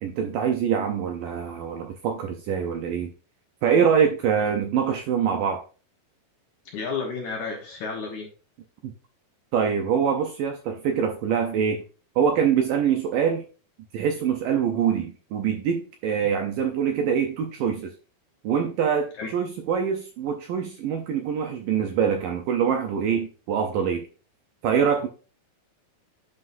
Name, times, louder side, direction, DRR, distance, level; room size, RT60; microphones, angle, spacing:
voice 1, 0.0-3.1 3.6-5.6 8.8-8.9 9.5-11.8 12.2-13.4 13.9-17.9 18.4-24.1 24.6-25.1, right 7 dB, 75° right, 2.0 m, -24 dB
voice 2, 6.7-8.3 19.2-19.3, left 4 dB, 65° left, 2.0 m, -32 dB
9.6 x 5.5 x 2.6 m
omnidirectional pair, 4.7 m